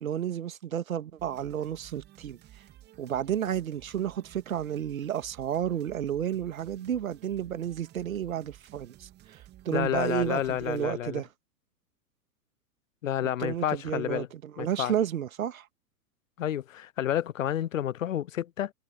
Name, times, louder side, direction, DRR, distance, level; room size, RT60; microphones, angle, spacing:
voice 1, 0.0-2.4 3.0-11.3 13.2-15.7, right 10 dB, 55° right, 2.1 m, -32 dB
sound 1, 1.2-10.9, right 14 dB, 20° right, 2.4 m, -54 dB
voice 2, 9.7-11.2 13.0-14.3 14.6-14.9 16.4-18.7, left 11 dB, 55° left, 0.7 m, -30 dB
figure-of-eight pair, 110°, 48 cm